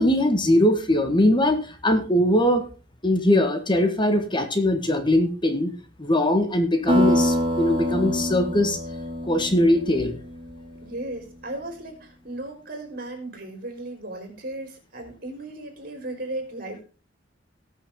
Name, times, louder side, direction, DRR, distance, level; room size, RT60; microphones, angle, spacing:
voice 1, 0.0-2.7 3.0-5.7 6.0-8.8 9.2-10.1, left 1 dB, 25° left, 7 dB, 1.5 m, -21 dB
sound 1, 6.9-11.2, left 1 dB, 25° right, 2.3 m, -25 dB
voice 2, 10.8-16.8, right 2 dB, 55° right, 4 dB, 4.5 m, -36 dB
19.0 x 6.4 x 3.7 m, 0.35 s
head